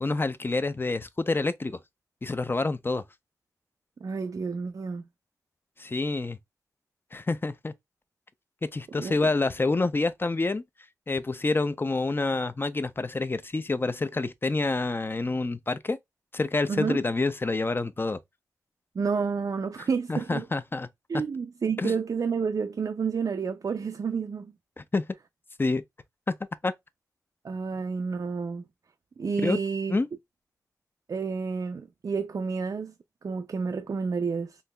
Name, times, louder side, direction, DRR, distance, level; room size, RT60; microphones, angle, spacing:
voice 1, 0.0-1.8 2.2-3.0 5.8-6.4 7.1-7.7 8.7-10.6 11.1-16.0 16.3-18.2 19.8-20.9 21.8-21.9 24.8-25.1 25.6-25.8 26.3-26.4 26.6-26.7 29.4-29.6 29.9-30.1, left 3 dB, 30° left, 0.5 m, -27 dB
voice 2, 4.0-5.0 8.9-9.3 16.7-17.0 19.0-20.5 21.1-24.5 27.4-28.6 29.2-30.0 31.1-32.9 33.2-34.6, right 5 dB, 55° right, 0.3 m, -30 dB
3.9 x 2.8 x 2.2 m
cardioid pair, 50°, 7 cm